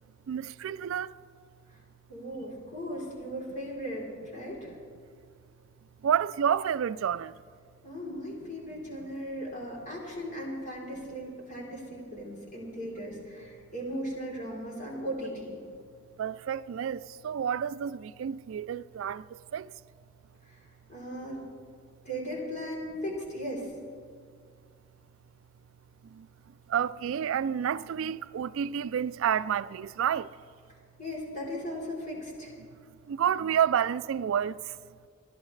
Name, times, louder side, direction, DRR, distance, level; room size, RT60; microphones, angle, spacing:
voice 1, 0.3-1.1 6.0-7.3 16.2-19.2 19.5-19.7 26.7-30.3 33.1-34.6, right 8 dB, 70° right, 0.3 m, -29 dB
voice 2, 2.1-4.8 7.8-15.6 20.4-21.4 22.0-23.7 31.0-32.5, equal, 35° left, 3.5 m, -37 dB
28.0 x 11.5 x 3.2 m
head